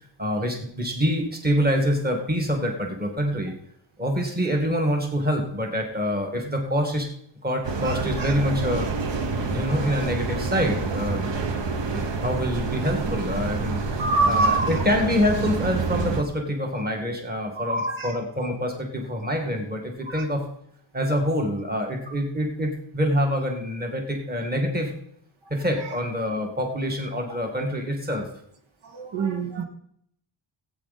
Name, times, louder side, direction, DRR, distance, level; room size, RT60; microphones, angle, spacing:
voice 1, 0.2-3.5 4.0-7.1 7.4-8.9 9.4-11.3 11.9-13.8 14.3-20.5 20.9-24.9 25.5-28.3, equal, 20° right, 2 dB, 1.8 m, -26 dB
sound 1, 7.6-16.2, right 4 dB, 65° right, 1.2 m, -28 dB
voice 2, 7.8-8.3 14.0-14.8 17.6-18.1 20.1-20.2 28.9-29.6, right 3 dB, 85° right, 3 dB, 1.9 m, -25 dB
16.5 x 8.6 x 4.1 m, 0.68 s
wide cardioid pair, 175°, 47 cm